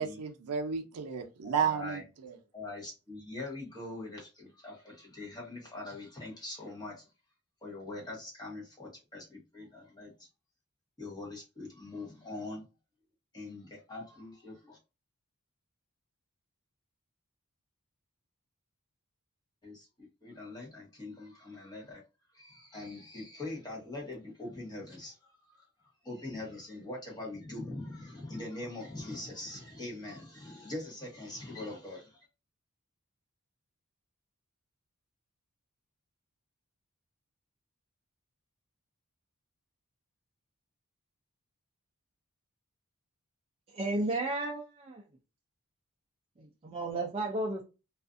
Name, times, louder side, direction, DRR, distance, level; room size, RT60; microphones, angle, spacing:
voice 1, 0.0-2.4, right 7 dB, 90° right, 0.5 m, -32 dB
voice 2, 1.4-2.0 2.5-7.0 7.6-10.3 11.0-12.6 13.3-14.8 19.6-22.0 22.3-32.2, left 2 dB, 20° left, 1.0 m, -43 dB
voice 3, 43.7-45.0 46.4-47.6, right 2 dB, 25° right, 0.4 m, -33 dB
2.4 x 2.4 x 2.4 m
head